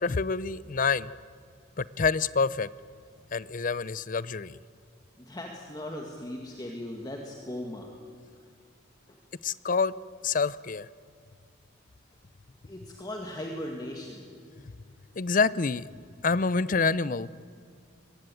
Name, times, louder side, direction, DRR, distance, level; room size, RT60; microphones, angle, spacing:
voice 1, 0.0-1.1 1.8-2.7 3.3-4.6 9.4-9.9 10.2-10.9 15.2-15.8 16.2-17.5, left 4 dB, 40° left, 19 dB, 0.5 m, -27 dB
voice 2, 5.2-7.9 9.1-9.2 12.6-14.4, left 1 dB, 20° left, 1 dB, 2.0 m, -38 dB
23.5 x 21.0 x 9.2 m, 2.2 s
head